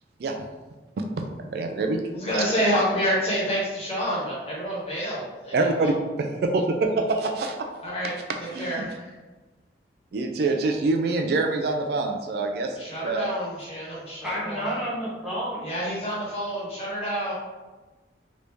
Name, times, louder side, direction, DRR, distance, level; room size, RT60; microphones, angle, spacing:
voice 1, 1.5-2.0 5.5-7.6 8.5-8.9 10.1-13.2, right 3 dB, 55° right, 0.3 m, -25 dB
voice 2, 2.1-5.9 7.8-8.1 8.5-9.1 12.8-14.8 15.6-17.3, equal, 35° left, 1.2 m, -28 dB
voice 3, 14.2-15.7, equal, ahead, 0.5 m, -30 dB
3.0 x 2.6 x 3.4 m
head